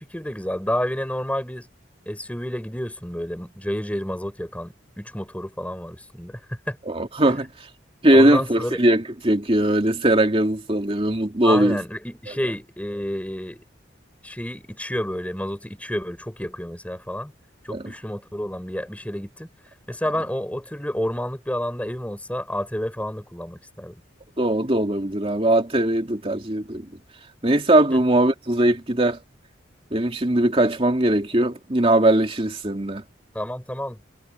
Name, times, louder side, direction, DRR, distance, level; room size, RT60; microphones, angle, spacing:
voice 1, 0.0-1.7 2.1-6.8 8.1-8.8 11.4-13.6 14.2-17.3 17.6-19.5 19.9-24.0 27.9-28.0 33.3-34.0, equal, 10° left, 4.2 m, -30 dB
voice 2, 6.9-7.5 8.0-11.8 12.3-12.4 17.7-17.8 24.4-26.9 27.4-29.2 29.9-33.0, right 1 dB, 30° right, 2.6 m, -20 dB
head